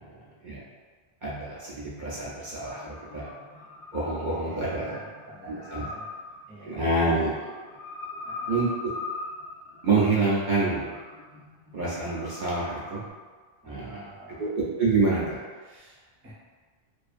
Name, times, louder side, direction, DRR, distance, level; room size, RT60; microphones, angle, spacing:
voice 1, 1.2-3.3 3.9-5.0 5.4-5.8 6.6-7.5 8.5-8.7 9.8-10.9 11.7-13.0 13.6-14.1 14.4-15.4, right 3 dB, 55° right, -8 dB, 0.7 m, -27 dB
sound 1, 2.6-13.1, left 3 dB, 60° left, 0.8 m, -41 dB
voice 2, 4.3-6.1 6.5-6.8 8.2-8.7 13.6-14.5 15.6-16.3, right 1 dB, 15° right, -8 dB, 0.5 m, -48 dB
2.5 x 2.5 x 2.4 m, 1.5 s
omnidirectional pair, 1.1 m